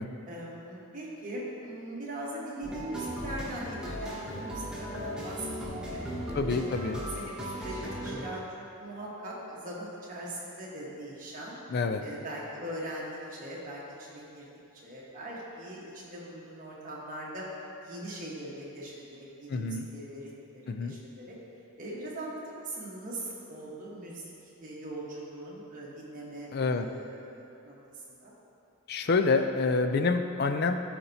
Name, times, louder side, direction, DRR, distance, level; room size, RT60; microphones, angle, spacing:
voice 1, 0.3-6.7 7.1-11.6 12.0-14.5 14.7-17.4 17.8-21.4 21.8-27.7 28.1-28.3, right 1 dB, 35° right, -6 dB, 1.3 m, -41 dB
sound 1, 2.6-8.3, equal, 5° right, 1.2 m, -37 dB
voice 2, 6.3-7.0 11.7-12.0 19.5-19.9 20.7-20.9 26.5-26.9 28.9-30.8, left 4 dB, 45° left, 7 dB, 0.3 m, -27 dB
12.5 x 4.4 x 2.7 m, 2.7 s
head